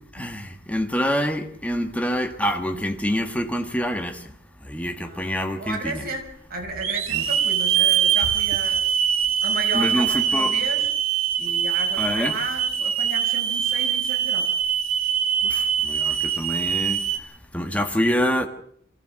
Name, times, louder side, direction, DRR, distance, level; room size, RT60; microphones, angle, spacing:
voice 1, 0.1-4.2 4.6-6.0 7.1-7.2 9.7-10.5 12.0-12.3 15.5-17.0 17.5-18.5, equal, 5° left, 1.7 m, -26 dB
voice 2, 5.0-8.9 9.4-10.9 11.4-14.6, right 2 dB, 45° right, 5.3 m, -34 dB
Hiss / Alarm, 5.7-5.8 6.8-17.2, right 8 dB, 75° right, 2.7 m, -23 dB
24.0 x 16.5 x 7.7 m
head